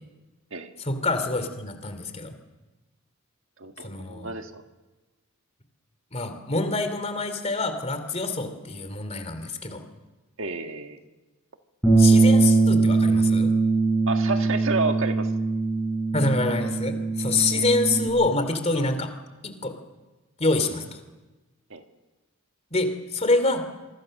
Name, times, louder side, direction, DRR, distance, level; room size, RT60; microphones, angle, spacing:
voice 1, 0.8-2.3 3.8-4.3 6.1-9.8 12.0-13.5 16.1-19.1 19.4-19.7 20.4-21.0 22.7-23.6, left 2 dB, 30° left, 8 dB, 2.8 m, -26 dB
voice 2, 3.6-4.6 10.4-11.0 14.1-15.3 17.5-17.7 21.7-21.8, right 3 dB, 60° right, 6 dB, 1.7 m, -30 dB
Bass guitar, 11.8-18.1, right 3 dB, ahead, 7.3 m, -21 dB
27.0 x 23.5 x 6.6 m, 1.2 s
head